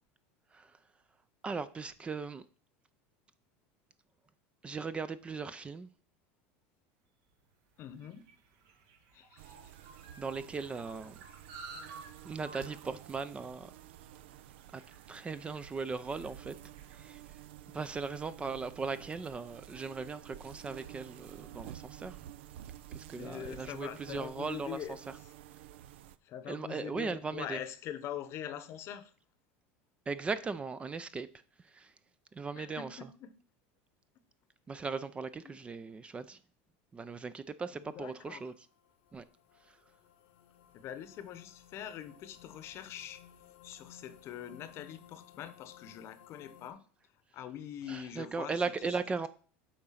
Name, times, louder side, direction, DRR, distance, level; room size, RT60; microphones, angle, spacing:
voice 1, 1.4-2.4 4.6-5.9 10.2-11.2 12.2-13.7 14.7-14.8 15.1-16.6 16.9-17.2 17.7-22.2 22.9-24.8 26.5-27.6 30.1-31.3 31.7-31.9 32.3-33.0 34.7-36.4 36.9-38.5 39.1-39.2 47.9-49.3, right 4 dB, 20° right, 0.4 m, -38 dB
sound 1, 7.3-17.9, right 4 dB, 65° right, 1.3 m, -54 dB
voice 2, 7.8-8.2 9.1-9.7 11.7-11.8 23.1-25.0 26.2-29.1 32.6-33.3 35.4-35.6 37.8-38.5 40.7-43.2 43.6-46.8 47.3-48.6, left 10 dB, 45° left, 0.8 m, -43 dB
sound 2, 9.4-26.2, right 12 dB, 85° right, 0.4 m, -51 dB
sound 3, 38.2-46.7, left 10 dB, 85° left, 0.9 m, -58 dB
8.4 x 3.9 x 5.7 m
supercardioid pair, 120°, 6 cm